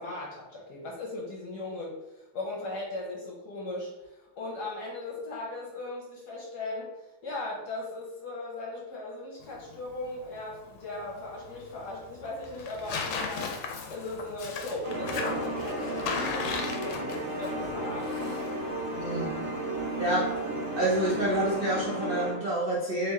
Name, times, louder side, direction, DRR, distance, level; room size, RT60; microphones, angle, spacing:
voice 1, 0.0-6.9 7.2-13.6 13.9-18.4, left 2 dB, 60° left, -3 dB, 1.2 m, -38 dB
Tearing, 9.4-21.6, left 5 dB, 80° left, 1.4 m, -38 dB
sound 1, 14.8-22.3, right 1 dB, 45° right, 0.9 m, -33 dB
voice 2, 19.0-19.3 20.0-20.3 20.8-23.1, right 1 dB, 75° right, -8 dB, 0.5 m, -28 dB
3.4 x 2.9 x 3.6 m, 0.95 s
omnidirectional pair, 2.3 m